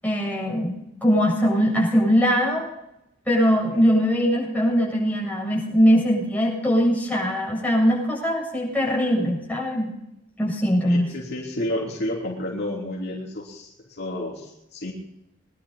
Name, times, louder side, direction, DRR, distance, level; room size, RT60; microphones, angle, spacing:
voice 1, 0.0-2.6 3.3-9.9 10.4-11.1, equal, 10° left, -4 dB, 7.6 m, -21 dB
voice 2, 10.9-13.7 14.0-14.9, left 1 dB, 55° left, -2 dB, 3.2 m, -30 dB
22.0 x 12.0 x 4.1 m, 0.84 s
head